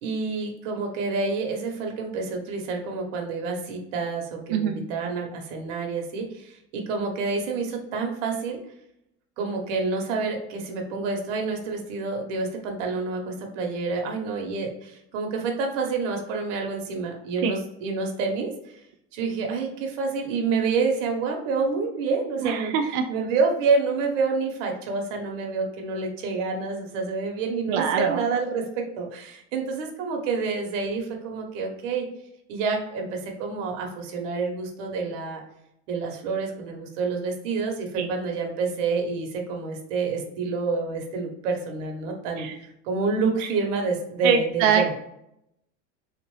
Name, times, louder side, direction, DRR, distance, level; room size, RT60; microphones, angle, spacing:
voice 1, 0.0-8.6 9.4-18.7 19.1-22.7 23.1-28.6 29.0-32.1 32.5-35.4 35.9-44.9, right 4 dB, 85° right, 2 dB, 1.1 m, -28 dB
voice 2, 4.5-4.8 17.4-17.6 22.4-23.1 27.7-28.2 38.0-38.1 42.4-42.6 44.2-45.0, right 7 dB, 65° right, 5 dB, 0.5 m, -24 dB
3.8 x 2.5 x 3.1 m, 0.78 s
cardioid pair, 140°, 36 cm